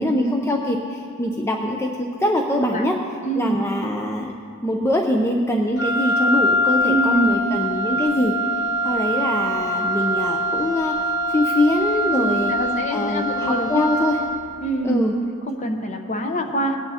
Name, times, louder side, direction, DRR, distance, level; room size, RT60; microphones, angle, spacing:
voice 1, 0.0-2.9 3.4-4.3 4.6-8.3 8.8-11.0 11.3-12.5 12.9-14.2 14.8-15.1, left 1 dB, 10° left, 1 dB, 0.5 m, -23 dB
voice 2, 3.2-3.6 6.9-7.4 12.1-13.8 14.6-15.0 15.5-16.8, right 1 dB, 35° left, 3 dB, 0.9 m, -25 dB
Wind instrument woodwind instrument, 5.8-14.5, equal, 85° left, 0.8 m, -23 dB
18.5 x 9.2 x 2.8 m, 2.4 s
head